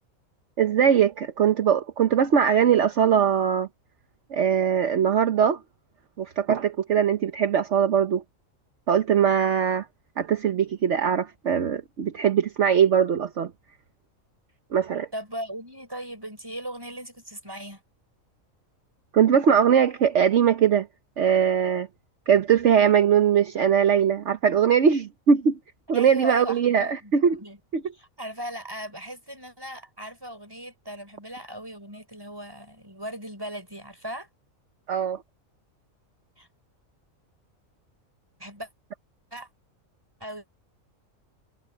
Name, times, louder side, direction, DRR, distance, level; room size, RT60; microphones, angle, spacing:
voice 1, 0.6-3.7 4.3-5.6 6.2-8.2 8.9-9.9 10.2-13.5 14.7-15.1 19.1-20.9 21.2-21.9 22.3-25.6 25.9-27.4 34.9-35.2, right 8 dB, 60° right, 1.3 m, -21 dB
voice 2, 15.1-17.8 25.9-27.1 27.4-27.6 27.9-34.3 36.4-36.5 38.4-38.7 39.3-39.5 40.2-40.4, equal, 15° right, 5.6 m, -38 dB
omnidirectional pair, 1.4 m